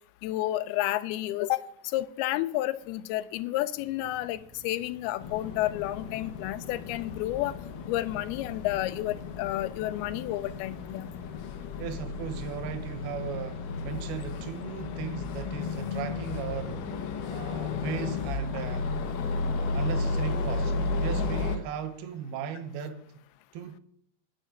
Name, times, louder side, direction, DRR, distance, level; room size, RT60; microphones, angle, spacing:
voice 1, 0.2-7.5 7.9-11.1 21.2-21.3, left 15 dB, 85° left, 2.5 m, -31 dB
sound 1, 3.8-13.1, equal, 25° right, 3.0 m, -54 dB
sound 2, 5.2-21.6, left 3 dB, 65° left, 2.6 m, -33 dB
voice 2, 11.8-18.9 19.5-20.7 21.0-23.0 23.5-23.8, right 7 dB, 80° right, 2.9 m, -37 dB
12.5 x 6.4 x 9.1 m
omnidirectional pair, 4.4 m